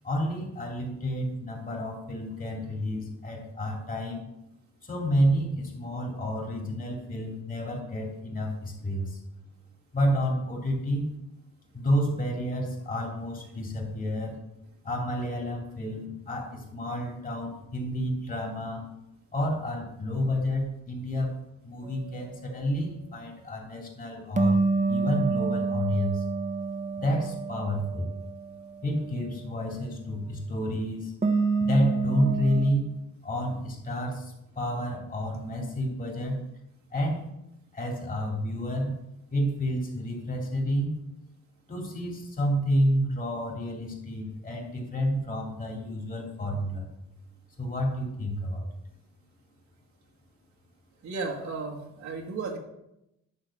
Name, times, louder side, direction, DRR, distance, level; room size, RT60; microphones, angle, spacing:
voice 1, 0.0-4.3 4.8-9.2 9.9-11.1 11.7-14.4 14.8-18.9 19.3-21.3 21.6-26.2 27.0-28.1 28.8-31.1 31.6-32.8 33.2-36.4 36.9-37.2 37.7-39.0 39.3-41.0 41.7-46.9 47.6-48.7, equal, 30° left, 0 dB, 2.9 m, -29 dB
sound 1, 24.4-28.5 31.2-32.7, right 4 dB, 25° right, 1.1 m, -27 dB
voice 2, 51.0-52.6, right 4 dB, 70° right, -1 dB, 1.7 m, -34 dB
10.5 x 4.0 x 7.2 m, 0.86 s
cardioid pair, 90°, 30 cm